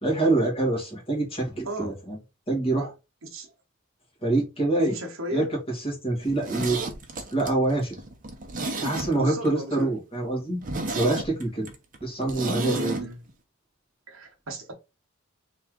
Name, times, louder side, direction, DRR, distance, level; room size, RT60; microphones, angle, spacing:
voice 1, 0.0-2.2 2.5-2.9 4.2-5.0 5.3-6.8 7.3-8.0 8.8-10.6 10.9-11.7 12.0-13.0, right 2 dB, 25° left, 1.9 m, -25 dB
voice 2, 1.6-2.0 3.2-3.5 4.8-5.5 9.1-9.9 12.5-13.2 14.1-14.7, equal, 65° right, 1.0 m, -34 dB
Zipper (clothing), 6.2-9.5 9.8-9.9 10.2-10.3 10.6-13.0 13.3-13.4, right 2 dB, 40° right, 0.8 m, -32 dB
3.5 x 3.1 x 3.7 m
head